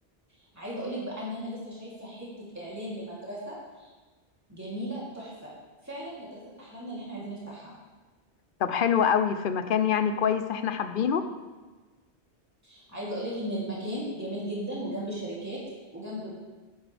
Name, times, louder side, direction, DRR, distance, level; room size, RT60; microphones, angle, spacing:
voice 1, 0.5-3.9 4.5-5.5 5.8-7.7 12.6-15.6 15.9-16.4, equal, 15° right, -7 dB, 3.1 m, -36 dB
voice 2, 8.6-11.3, left 7 dB, 55° left, 10 dB, 0.8 m, -25 dB
10.0 x 10.0 x 3.4 m, 1.3 s
omnidirectional pair, 1.2 m